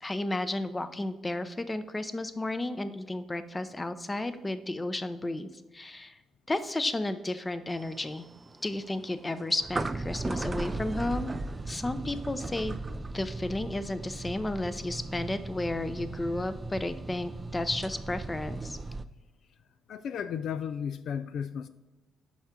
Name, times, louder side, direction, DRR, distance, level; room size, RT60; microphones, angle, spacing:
voice 1, 0.0-6.2 6.5-8.3 8.6-11.3 11.7-12.8 13.1-18.8, left 2 dB, 20° left, 11 dB, 0.6 m, -33 dB
sound 1, 7.7-19.1, right 3 dB, 25° right, 0.4 m, -37 dB
voice 2, 19.9-21.7, left 8 dB, 70° left, 12 dB, 0.3 m, -34 dB
7.3 x 5.6 x 3.7 m, 1.1 s
cardioid pair, 90°, 0 cm